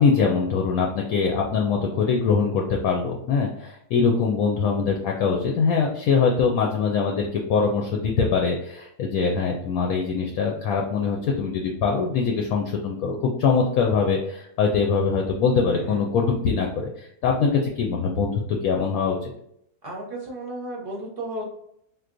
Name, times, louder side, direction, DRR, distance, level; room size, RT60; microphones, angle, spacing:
voice 1, 0.0-19.3, left 5 dB, 70° left, 1 dB, 1.0 m, -23 dB
voice 2, 19.8-21.5, right 1 dB, 50° right, -1 dB, 0.8 m, -34 dB
3.7 x 2.7 x 2.5 m, 0.74 s
omnidirectional pair, 1.7 m